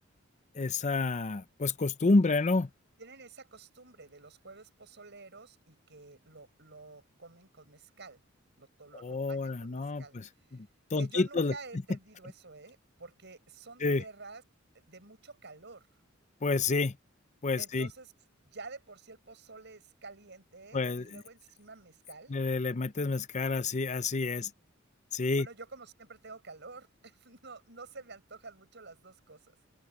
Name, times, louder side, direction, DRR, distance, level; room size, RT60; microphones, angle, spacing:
voice 1, 0.5-2.7 9.0-10.7 10.9-11.5 13.8-14.0 16.4-17.0 17.4-17.9 20.7-21.2 22.3-24.5 25.1-25.5, left 3 dB, 35° left, 0.6 m, -29 dB
voice 2, 3.0-8.2 8.6-10.2 11.0-14.4 14.7-15.9 17.6-18.1 18.5-22.3 25.4-29.6, right 3 dB, 60° right, 7.2 m, -49 dB
open air
head